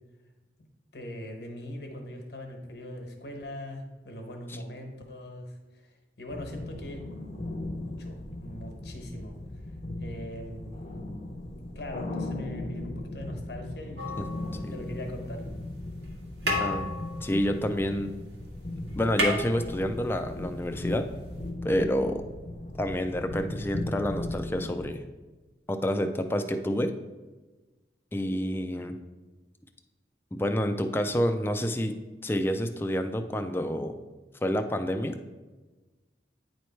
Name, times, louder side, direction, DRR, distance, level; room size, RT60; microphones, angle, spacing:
voice 1, 0.9-7.0 7.9-9.4 10.0-10.7 11.7-14.1 14.6-15.4, left 1 dB, 65° left, 3 dB, 1.1 m, -41 dB
sound 1, 6.3-24.9, left 1 dB, 40° left, 0.7 m, -38 dB
sound 2, 14.0-15.1 16.0-16.1 16.4-18.3 18.6-18.7 18.9-20.3 21.5-21.6, left 1 dB, 80° right, 1.4 m, -32 dB
voice 2, 16.6-16.9 17.2-18.2 19.0-21.1 21.6-22.2 22.8-25.0 25.7-26.9 28.1-29.0 30.3-31.9 32.2-34.0 34.4-35.2, equal, 15° left, 7 dB, 0.4 m, -28 dB
9.2 x 3.1 x 4.5 m, 1.2 s
head